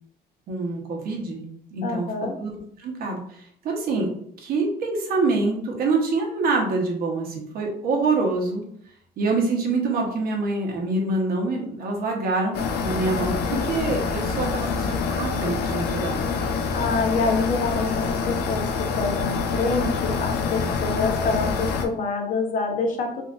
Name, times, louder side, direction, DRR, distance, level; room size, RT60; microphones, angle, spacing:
voice 1, 0.5-2.1 2.4-8.6 9.2-16.2 20.6-20.7, right 3 dB, 60° right, 0 dB, 0.9 m, -26 dB
voice 2, 1.8-2.3 14.6-14.8 16.7-23.2, left 4 dB, 50° left, 3 dB, 0.7 m, -26 dB
sound 1, 12.5-21.9, left 5 dB, 80° left, 0.5 m, -26 dB
3.6 x 2.5 x 2.5 m, 0.67 s
cardioid pair, 110°, 17 cm